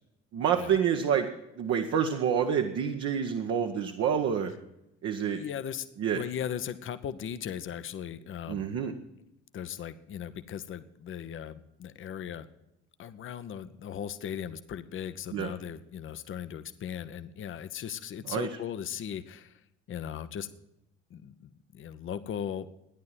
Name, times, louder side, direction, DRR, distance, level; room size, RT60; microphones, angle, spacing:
voice 1, 0.3-1.3 1.6-4.5 5.0-5.4 6.0-6.2 8.5-8.9 15.3-15.5 18.3-18.5, right 8 dB, 50° right, 3 dB, 1.1 m, -28 dB
voice 2, 5.3-5.9 6.1-8.7 9.5-12.5 13.0-19.6 19.9-20.5 21.1-22.7, left 9 dB, 40° left, 12 dB, 0.9 m, -38 dB
13.5 x 10.5 x 5.7 m, 0.85 s
figure-of-eight pair, 50°, 33 cm